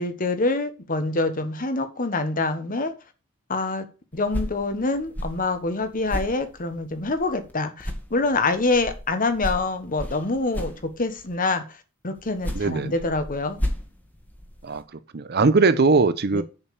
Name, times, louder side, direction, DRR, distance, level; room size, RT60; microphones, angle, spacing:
voice 1, 0.0-2.9 3.5-3.8 4.1-11.8 12.0-13.6 16.3-16.4, left 3 dB, 40° left, 1.2 m, -26 dB
sound 1, 4.1-7.5 7.8-11.3 12.2-14.8, equal, 10° left, 1.5 m, -34 dB
voice 2, 12.5-12.9 14.6-16.4, right 3 dB, 50° right, 0.8 m, -20 dB
7.1 x 5.4 x 6.9 m
head